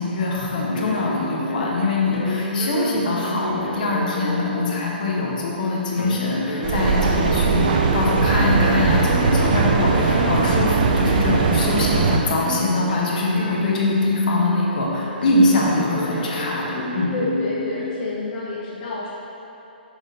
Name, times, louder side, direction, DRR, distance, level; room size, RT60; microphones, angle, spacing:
voice 1, 0.0-17.1, left 2 dB, 50° left, -3 dB, 1.1 m, -23 dB
sound 1, 0.6-11.2 12.2-18.1, left 1 dB, 80° left, 0.9 m, -28 dB
Mechanical fan, 6.6-12.2, right 4 dB, 50° right, 0.5 m, -19 dB
voice 2, 17.1-19.1, left 2 dB, 35° left, -7 dB, 0.9 m, -28 dB
6.2 x 6.0 x 2.7 m, 2.9 s
figure-of-eight pair, 125°, 6 cm